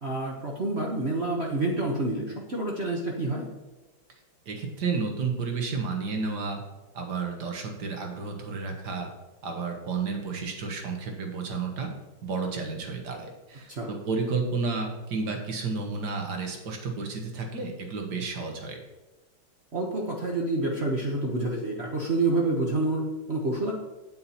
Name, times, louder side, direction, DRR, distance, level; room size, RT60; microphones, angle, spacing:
voice 1, 0.0-3.5 13.7-13.9 19.7-23.7, right 2 dB, 40° right, -1 dB, 1.1 m, -28 dB
voice 2, 4.5-6.6 6.9-9.1 9.4-11.9 12.2-18.8, right 4 dB, 60° right, 3 dB, 1.9 m, -31 dB
8.7 x 8.5 x 4.3 m, 1.1 s
omnidirectional pair, 2.2 m